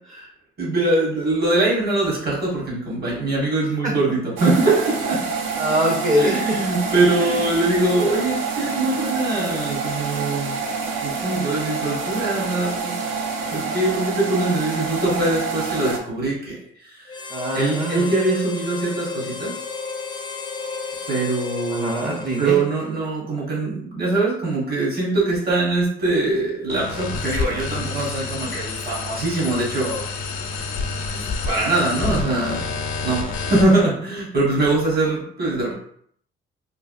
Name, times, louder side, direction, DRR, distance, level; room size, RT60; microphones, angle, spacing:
voice 1, 0.6-5.2 6.1-10.5 11.0-13.2 13.5-17.2 17.5-19.6 21.1-21.9 22.4-30.0 31.1-32.6 33.0-35.7, right 2 dB, 55° right, -5 dB, 1.4 m, -22 dB
sound 1, 4.4-16.0, right 4 dB, 75° right, 0.5 m, -27 dB
voice 2, 5.6-6.4 7.2-7.4 17.3-18.1 21.7-22.6, equal, 35° right, 0 dB, 0.6 m, -23 dB
Harmonica, 17.1-23.1, left 5 dB, 25° left, 0.4 m, -33 dB
sound 2, 26.7-33.8, left 4 dB, 85° left, 0.5 m, -28 dB
3.3 x 2.4 x 2.5 m, 0.63 s
cardioid pair, 90°, 20 cm